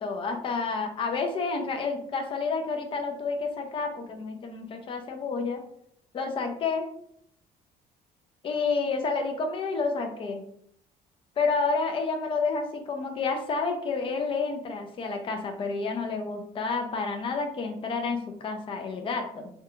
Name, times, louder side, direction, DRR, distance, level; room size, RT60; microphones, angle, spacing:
voice 1, 0.0-5.6 6.1-6.8 8.4-10.4 11.4-19.5, left 4 dB, 30° left, 4 dB, 0.4 m, -29 dB
2.7 x 2.3 x 2.3 m, 0.70 s
cardioid pair, 110°, 17 cm